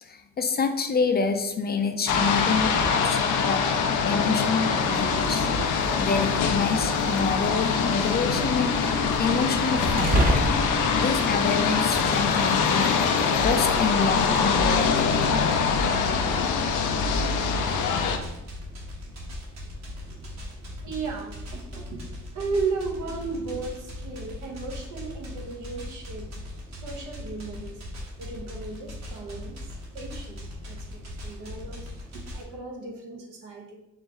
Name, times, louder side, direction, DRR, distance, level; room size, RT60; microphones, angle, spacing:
voice 1, 0.0-3.7 4.0-5.5 6.0-8.7 9.2-10.5 10.9-13.0 13.4-15.3, left 5 dB, 35° left, 7 dB, 0.5 m, -27 dB
sound 1, 2.1-18.2, left 5 dB, 85° left, 0.6 m, -24 dB
sound 2, 4.8-12.6, right 1 dB, 30° right, 0.9 m, -31 dB
sound 3, 14.4-32.4, left 1 dB, 60° right, 1.4 m, -39 dB
voice 2, 20.8-26.4 26.7-27.8 28.2-31.8 32.1-33.8, right 4 dB, 90° right, 0 dB, 1.1 m, -35 dB
4.3 x 3.0 x 3.6 m, 0.91 s
cardioid pair, 90°, 30 cm